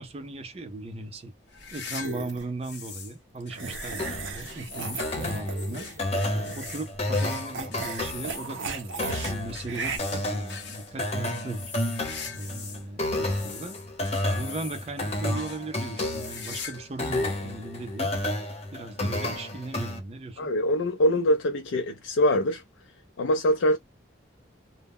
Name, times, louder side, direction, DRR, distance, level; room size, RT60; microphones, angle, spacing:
voice 1, 0.0-1.3 1.7-5.9 6.5-11.7 12.3-13.8 14.3-18.1 18.7-20.5, right 2 dB, 30° right, 0.4 m, -37 dB
sound 1, 1.5-3.2 3.5-12.8 13.1-15.0 15.4-15.6 16.0-16.9 17.1-17.2 18.0-18.1 19.3-19.4, left 6 dB, 70° left, 0.8 m, -42 dB
sound 2, 2.0-2.5 3.5-6.9 7.2-9.3 9.7-10.0, right 4 dB, 85° right, 0.6 m, -36 dB
sound 3, 4.0-20.0, left 1 dB, 35° left, 0.8 m, -31 dB
voice 2, 20.4-22.6 23.2-23.8, left 1 dB, 85° left, 0.4 m, -23 dB
2.0 x 2.0 x 3.4 m
head